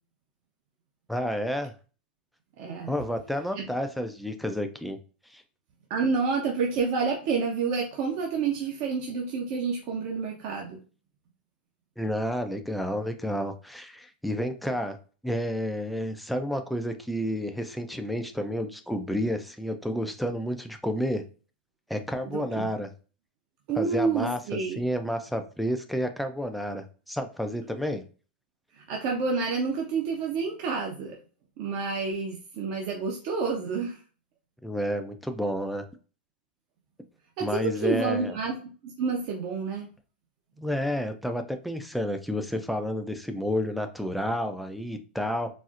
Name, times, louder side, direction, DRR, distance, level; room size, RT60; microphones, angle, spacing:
voice 1, 1.1-1.7 2.9-5.0 5.3-5.4 12.0-15.0 15.2-21.2 21.9-22.9 23.8-24.4 24.8-28.0 34.6-35.8 37.4-38.4 40.6-45.5, equal, ahead, 5 dB, 0.4 m, -30 dB
voice 2, 2.6-2.9 3.6-3.7 5.9-10.8 22.3-22.7 23.7-24.8 28.8-31.2 31.6-34.0 37.4-38.6 38.8-39.9, right 5 dB, 50° right, 0 dB, 0.7 m, -29 dB
4.2 x 2.0 x 2.4 m, 0.36 s
hypercardioid pair, 125°, 6 cm